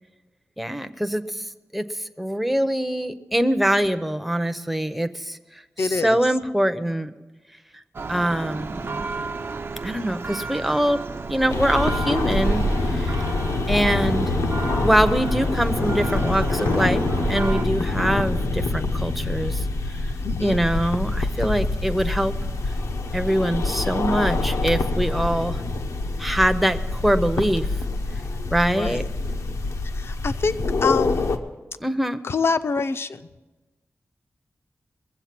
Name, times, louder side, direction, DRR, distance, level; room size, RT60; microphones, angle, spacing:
voice 1, 0.6-1.4 1.7-7.1 8.1-9.1 9.8-11.0 11.3-12.6 12.9-13.2 13.7-14.3 14.8-17.0 17.3-19.6 20.4-22.3 23.1-25.6 26.2-27.7 28.5-29.0 31.8-32.2, right 1 dB, ahead, 9 dB, 0.5 m, -23 dB
voice 2, 5.8-6.2 20.2-20.6 28.7-29.1 29.9-31.4 32.2-33.3, left 4 dB, 55° left, 11 dB, 0.5 m, -26 dB
Church bell, 7.9-17.6, right 3 dB, 45° right, 0.5 m, -31 dB
sound 1, 11.5-31.4, left 3 dB, 85° left, 0.8 m, -25 dB
21.0 x 7.8 x 5.9 m, 1.2 s
wide cardioid pair, 140°, 5 cm